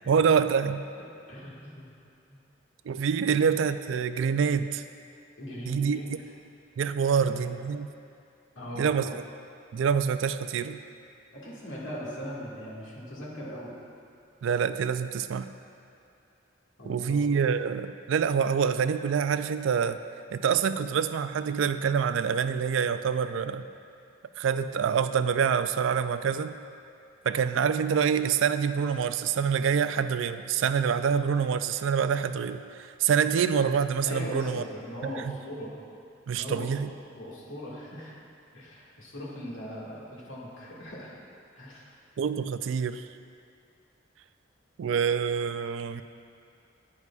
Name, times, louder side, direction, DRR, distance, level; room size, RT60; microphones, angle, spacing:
voice 1, 0.1-0.8 2.9-4.8 5.6-6.0 6.8-7.9 8.8-9.2 9.7-10.8 14.4-15.5 16.9-20.0 20.3-23.7 24.4-26.5 27.2-34.6 35.0-35.1 36.3-36.9 42.2-43.0 44.8-46.0, right 7 dB, 75° right, 11 dB, 0.3 m, -26 dB
voice 2, 1.3-1.9 2.3-2.4 3.2-3.4 5.4-6.2 7.1-7.4 8.6-8.9 11.3-13.8 16.8-17.3 34.1-35.7 36.3-36.7 37.2-38.2 38.5-41.2 41.5-41.9, equal, 80° left, -5 dB, 1.9 m, -40 dB
11.0 x 9.7 x 2.4 m, 2.5 s
head